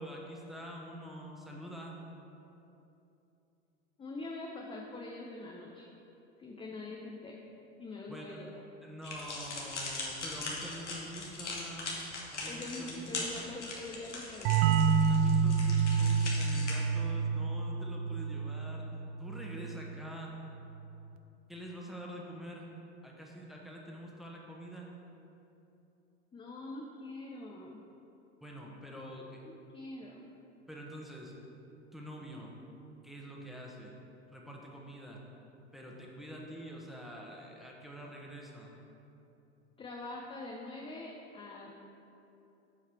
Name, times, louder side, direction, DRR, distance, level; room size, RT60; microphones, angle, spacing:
voice 1, 0.0-1.9 8.1-8.5 8.8-12.0 12.3-13.3 15.1-18.8 19.2-20.3 21.5-22.7 23.0-24.9 28.4-29.4 30.7-31.3 31.9-32.5 33.0-33.9 34.3-35.2 35.7-38.7, equal, ahead, -2 dB, 1.2 m, -46 dB
voice 2, 4.0-5.9 6.4-7.4 7.8-8.5 12.5-14.8 26.3-27.8 29.5-30.3 39.8-41.7, left 2 dB, 15° left, -1 dB, 0.6 m, -44 dB
sound 1, 9.0-16.7, left 3 dB, 90° left, 1.4 m, -40 dB
sound 2, 14.4-19.9, right 6 dB, 45° right, 0.4 m, -29 dB
7.6 x 4.8 x 4.6 m, 2.9 s
hypercardioid pair, 80°, 34 cm